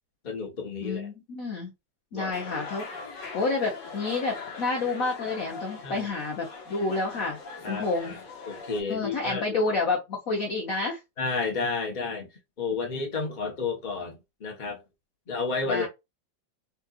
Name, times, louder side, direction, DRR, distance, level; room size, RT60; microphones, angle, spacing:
voice 1, 0.2-1.1 2.1-2.3 5.8-6.1 7.6-8.2 8.5-9.6 11.2-12.3 12.6-14.8 15.3-15.9, left 4 dB, 30° left, 1.0 m, -31 dB
voice 2, 0.8-1.7 2.1-2.9 3.3-7.4 7.7-8.1 8.9-11.0 15.6-15.9, left 3 dB, 50° left, 1.3 m, -29 dB
sound 1, 2.3-8.8, left 4 dB, 70° left, 1.9 m, -41 dB
5.5 x 2.5 x 2.4 m
omnidirectional pair, 2.0 m